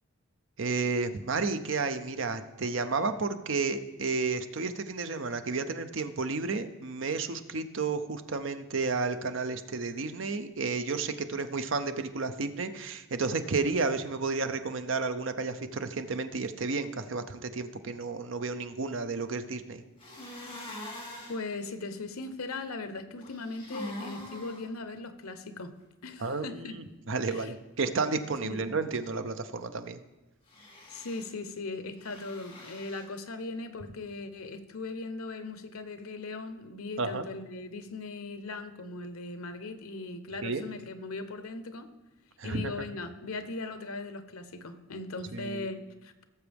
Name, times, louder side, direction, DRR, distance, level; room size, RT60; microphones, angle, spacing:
voice 1, 0.6-19.8 26.2-30.0 37.0-37.3 40.4-40.7 42.4-42.7 45.3-45.7, right 4 dB, 60° right, 9 dB, 0.7 m, -32 dB
Cleaning Nose, 20.0-21.4 23.2-24.6 30.5-31.2 32.0-33.0, left 1 dB, 25° left, 2.6 m, -43 dB
voice 2, 21.3-25.7 26.0-26.8 27.2-27.5 28.4-28.6 30.9-41.9 42.4-46.2, left 3 dB, 90° left, 11 dB, 0.9 m, -39 dB
17.5 x 7.1 x 3.5 m, 1.1 s
head